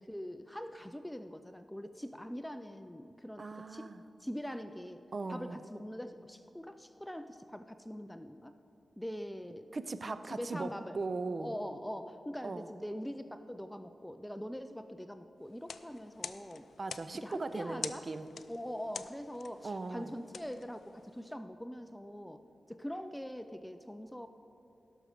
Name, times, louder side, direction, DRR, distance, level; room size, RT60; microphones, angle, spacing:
voice 1, 0.0-3.9 4.2-8.5 9.0-9.7 10.3-11.0 11.4-16.7 17.1-18.1 18.5-24.3, equal, 5° left, 9 dB, 0.4 m, -43 dB
voice 2, 3.4-4.0 5.1-5.7 9.7-11.5 12.4-12.7 16.8-18.3 19.6-20.1, right 3 dB, 45° right, 11 dB, 0.5 m, -39 dB
sound 1, 15.5-21.3, left 6 dB, 80° left, 0.4 m, -47 dB
16.5 x 6.4 x 4.9 m, 2.8 s
cardioid pair, 80°, 0 cm